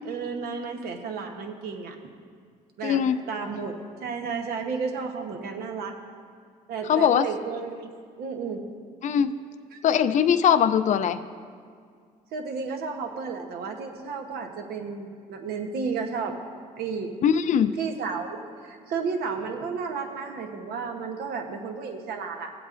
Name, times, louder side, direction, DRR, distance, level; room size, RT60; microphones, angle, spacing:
voice 1, 0.0-2.0 2.8-3.0 3.3-5.9 6.7-8.6 9.7-9.8 12.3-16.4 16.8-17.1 17.8-22.5, right 5 dB, 80° right, 4 dB, 1.0 m, -32 dB
voice 2, 2.8-3.2 6.9-7.2 9.0-9.3 9.8-11.2 17.2-17.7, left 8 dB, 50° left, 11 dB, 0.4 m, -21 dB
16.0 x 8.0 x 2.5 m, 2.1 s
cardioid pair, 95°, 16 cm